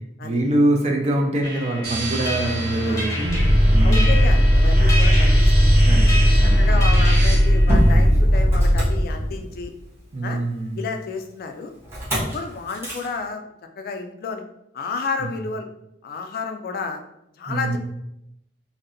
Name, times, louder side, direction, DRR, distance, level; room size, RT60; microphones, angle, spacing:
voice 1, 0.2-4.2 5.8-6.6 10.1-10.8 17.5-17.8, right 1 dB, 40° right, 2 dB, 0.4 m, -24 dB
sound 1, 1.4-8.1, left 1 dB, 20° left, 0.7 m, -32 dB
sound 2, 1.8-7.3, equal, 55° right, 0.8 m, -28 dB
Motor vehicle (road), 3.3-9.7 11.9-12.3 12.7-13.1, equal, 15° right, 0.8 m, -16 dB
voice 2, 3.8-5.5 6.6-9.7 10.2-10.4 10.8-11.7 12.1-13.4 13.8-14.4 14.7-15.7 16.0-17.0 17.4-17.8, left 4 dB, 55° left, 6 dB, 0.3 m, -31 dB
2.6 x 2.0 x 2.5 m, 0.80 s
head